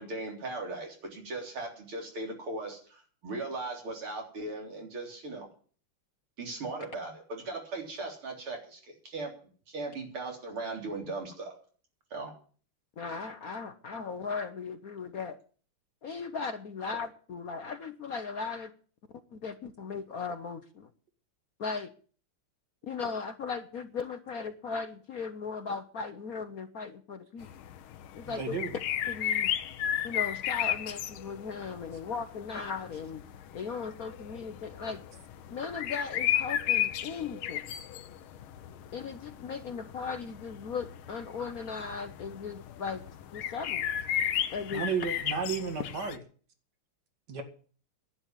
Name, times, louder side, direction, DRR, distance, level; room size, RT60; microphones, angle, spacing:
voice 1, 0.0-5.5 6.4-9.3 9.7-11.5 12.1-12.3, right 2 dB, 80° right, 1 dB, 4.5 m, -38 dB
voice 2, 13.0-15.4 16.0-18.7 19.3-20.9 21.6-21.9 22.8-27.5 28.1-28.6 29.1-29.5 30.0-33.2 33.5-35.0 35.5-37.6 38.9-43.0 43.3-43.8 44.5-44.8, left 5 dB, 55° left, 9 dB, 1.1 m, -37 dB
sound 1, 27.4-46.2, left 11 dB, 75° left, 1.6 m, -34 dB
voice 3, 28.2-28.7 44.7-46.2 47.3-47.4, right 5 dB, 50° right, 7 dB, 2.5 m, -33 dB
11.0 x 8.7 x 9.9 m, 0.44 s
omnidirectional pair, 2.3 m